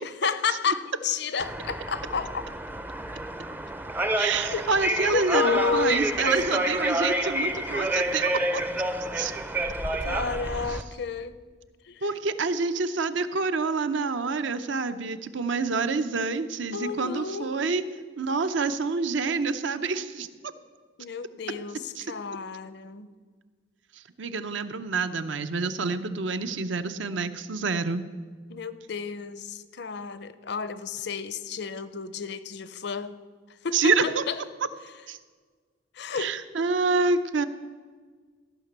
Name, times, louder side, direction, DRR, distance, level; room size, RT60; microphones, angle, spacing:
voice 1, 0.0-2.4 4.5-4.6 5.1-6.0 6.6-6.7 10.0-11.3 11.9-12.0 16.7-17.5 21.0-23.1 28.5-33.1 33.6-33.9 34.3-34.4 36.0-36.4, left 5 dB, 55° left, 14 dB, 0.6 m, -31 dB
sound 1, 1.4-10.8, right 1 dB, 10° right, 0.5 m, -29 dB
voice 2, 4.2-8.6 9.1-9.3 10.7-10.8 12.0-17.8 18.2-20.3 22.0-22.1 24.2-28.0 33.7-34.2 35.1-35.2 36.2-37.5, right 4 dB, 70° right, 11 dB, 0.7 m, -27 dB
14.5 x 5.9 x 8.0 m, 1.5 s
head